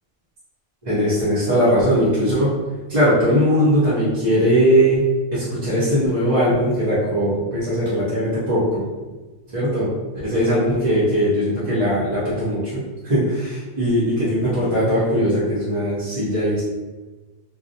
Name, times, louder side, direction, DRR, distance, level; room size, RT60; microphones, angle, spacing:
voice 1, 0.8-2.5 2.9-8.8 9.5-9.9 10.2-16.6, equal, 40° right, -11 dB, 0.6 m, -19 dB
2.2 x 2.1 x 2.6 m, 1.2 s
omnidirectional pair, 1.2 m